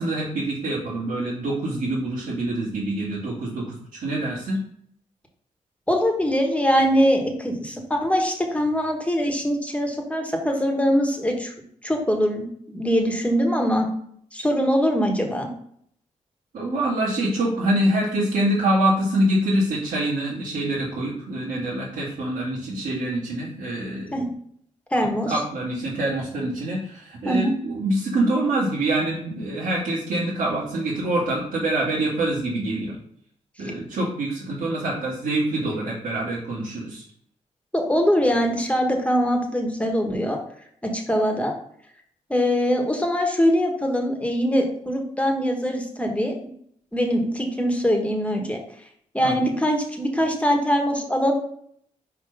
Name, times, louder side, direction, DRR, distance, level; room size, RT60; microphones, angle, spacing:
voice 1, 0.0-4.6 16.5-24.3 24.9-32.9 33.6-37.0 49.2-49.4, right 1 dB, 85° right, -10 dB, 2.1 m, -25 dB
voice 2, 5.9-11.5 11.8-13.9 14.3-15.5 24.1-24.2 24.9-25.4 27.2-27.5 37.7-40.4 40.8-41.5 42.3-46.4 46.9-48.6 49.1-51.4, equal, 10° left, 2 dB, 1.4 m, -22 dB
4.6 x 3.8 x 5.5 m, 0.66 s
cardioid pair, 65°, 14 cm